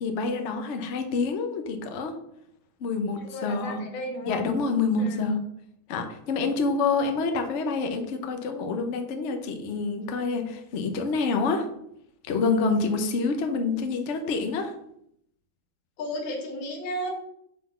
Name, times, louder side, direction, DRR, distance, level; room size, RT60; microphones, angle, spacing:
voice 1, 0.0-2.2 2.8-3.9 4.2-5.4 5.9-11.7 12.2-14.7, left 4 dB, 55° left, 6 dB, 0.8 m, -27 dB
voice 2, 3.2-4.5 5.0-5.4 16.0-17.1, left 1 dB, 75° left, 2 dB, 1.9 m, -33 dB
5.3 x 3.8 x 5.6 m, 0.74 s
omnidirectional pair, 2.1 m